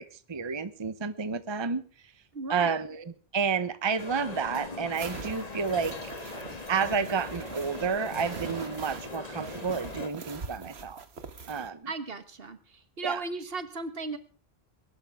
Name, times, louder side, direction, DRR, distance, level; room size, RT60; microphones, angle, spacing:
voice 1, 0.0-1.8 2.5-5.9 6.7-11.0 11.5-11.9 13.0-13.2, right 5 dB, 30° right, 13 dB, 0.8 m, -30 dB
voice 2, 2.3-2.8 11.9-12.6 13.0-14.2, right 3 dB, 65° right, 11 dB, 1.7 m, -35 dB
sound 1, 4.0-10.1, left 3 dB, 40° left, 1.7 m, -40 dB
sound 2, 4.9-11.7, right 5 dB, 80° right, 1.7 m, -43 dB
22.0 x 12.0 x 3.5 m, 0.39 s
omnidirectional pair, 1.1 m